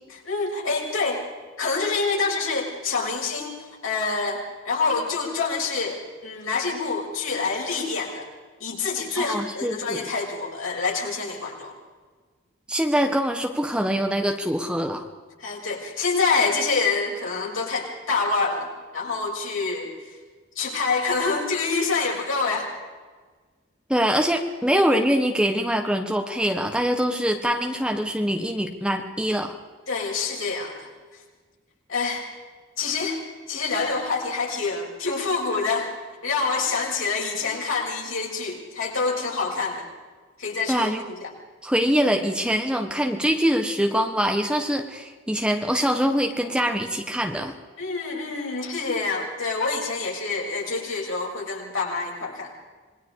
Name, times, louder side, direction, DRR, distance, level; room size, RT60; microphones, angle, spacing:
voice 1, 0.1-1.2 1.6-3.5 3.8-8.3 8.6-11.7 15.4-19.9 20.5-22.7 29.9-30.9 31.9-32.2 32.8-33.2 33.5-35.9 36.2-39.9 40.4-41.3 47.8-52.5, left 4 dB, 90° left, -2 dB, 6.8 m, -26 dB
voice 2, 9.2-10.0 12.7-15.0 23.9-29.6 40.7-41.0 41.6-47.5, equal, 5° right, 4 dB, 1.5 m, -24 dB
27.0 x 21.5 x 4.9 m, 1.4 s
head